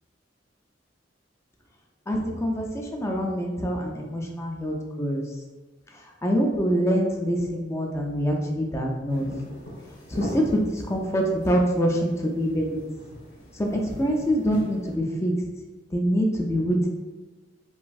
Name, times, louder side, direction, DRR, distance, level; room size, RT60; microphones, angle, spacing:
voice 1, 2.1-5.2 5.9-9.3 10.1-12.8 13.5-15.3 15.9-16.9, equal, 15° left, 0 dB, 0.4 m, -25 dB
sound 1, 9.1-14.9, left 1 dB, 65° left, 0.9 m, -42 dB
3.0 x 2.5 x 2.3 m, 1.3 s
head